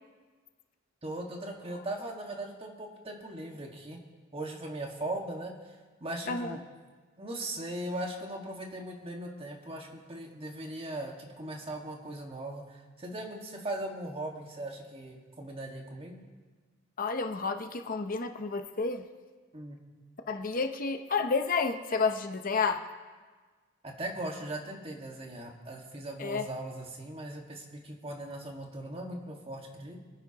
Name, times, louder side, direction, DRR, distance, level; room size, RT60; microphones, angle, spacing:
voice 1, 1.0-4.0 4.3-6.6 7.2-16.2 19.5-19.8 23.8-30.0, right 1 dB, 30° right, 1 dB, 1.7 m, -39 dB
voice 2, 6.3-6.6 17.0-19.0 20.3-22.8 26.2-26.5, left 4 dB, 45° left, 7 dB, 0.7 m, -30 dB
25.0 x 10.0 x 2.9 m, 1.4 s
head